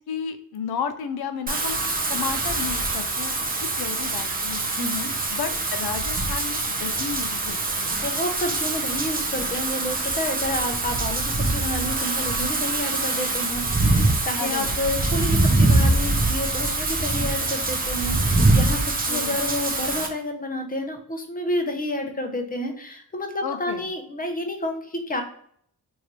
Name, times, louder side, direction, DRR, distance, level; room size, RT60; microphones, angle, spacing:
voice 1, 0.0-3.5 3.8-4.7 5.3-8.0 14.4-14.8 19.1-19.4 23.4-23.9, left 7 dB, 65° left, 9 dB, 0.6 m, -33 dB
Wind / Rain, 1.5-20.1, right 2 dB, 20° right, 0.6 m, -24 dB
voice 2, 4.8-5.1 7.9-25.2, left 1 dB, 20° left, 5 dB, 0.6 m, -30 dB
3.2 x 2.7 x 2.9 m, 0.63 s
cardioid pair, 65°, 41 cm